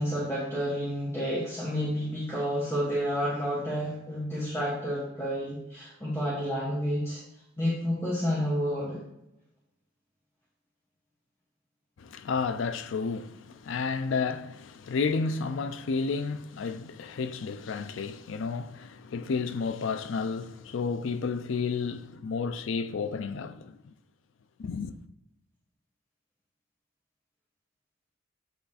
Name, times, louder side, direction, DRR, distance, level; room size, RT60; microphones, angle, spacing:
voice 1, 0.0-7.2 7.6-9.0, equal, 15° left, 1.3 m, -30 dB
voice 2, 12.0-23.9 24.6-24.9, left 5 dB, 75° left, 0.4 m, -31 dB
7.5 x 3.4 x 4.0 m
head